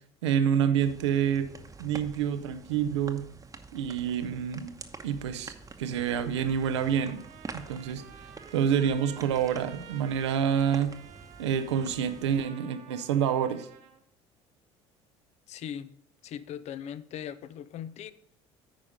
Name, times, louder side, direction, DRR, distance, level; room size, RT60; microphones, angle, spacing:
voice 1, 0.2-1.5 1.8-3.2 3.7-4.8 5.0-7.2 7.5-8.0 8.5-11.0 11.4-13.7, right 8 dB, 85° right, 10 dB, 0.6 m, -27 dB
sound 1, 0.8-12.4, right 4 dB, 25° right, 0.9 m, -47 dB
Trumpet, 6.3-14.0, right 8 dB, 60° right, 0.9 m, -51 dB
voice 2, 15.5-15.9 16.2-18.1, left 9 dB, 50° left, 16 dB, 0.6 m, -39 dB
9.0 x 4.9 x 5.1 m, 0.66 s
hypercardioid pair, 70°, 14 cm